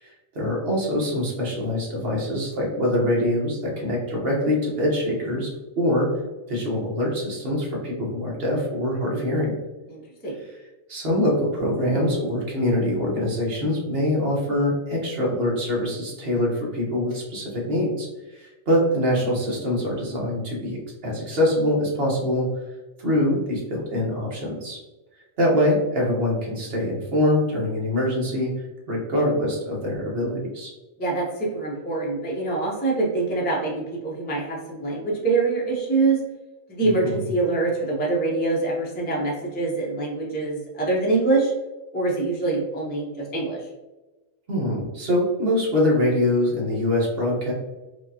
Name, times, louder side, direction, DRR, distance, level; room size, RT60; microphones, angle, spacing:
voice 1, 0.0-5.5 5.8-6.1 6.5-9.5 10.9-22.5 23.0-24.8 25.4-28.5 28.9-30.7 37.0-37.2 44.5-47.5, left 1 dB, 55° right, -3 dB, 1.3 m, -24 dB
voice 2, 9.9-10.4 31.0-36.2 36.7-41.5 41.9-43.7, right 3 dB, 10° left, -3 dB, 0.5 m, -24 dB
4.7 x 2.2 x 2.7 m, 1.1 s
omnidirectional pair, 1.2 m